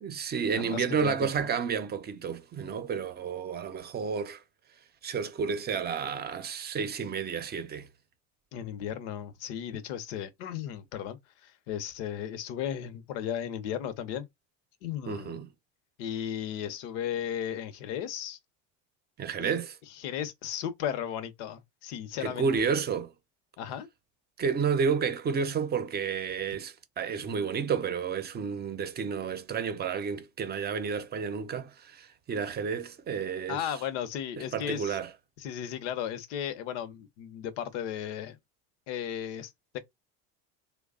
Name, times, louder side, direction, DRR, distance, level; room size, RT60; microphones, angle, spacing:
voice 1, 0.0-4.4 5.0-7.9 15.1-15.5 19.2-19.8 22.2-23.1 24.4-33.7 34.4-35.1, right 6 dB, 30° right, 0.6 m, -31 dB
voice 2, 0.5-1.5 8.5-14.3 14.8-15.4 16.0-18.4 19.4-19.6 20.0-22.7 23.6-23.9 33.5-35.0 35.4-38.4 38.9-39.8, left 9 dB, 90° left, 0.9 m, -35 dB
3.2 x 2.3 x 3.6 m
cardioid pair, 125°, 34 cm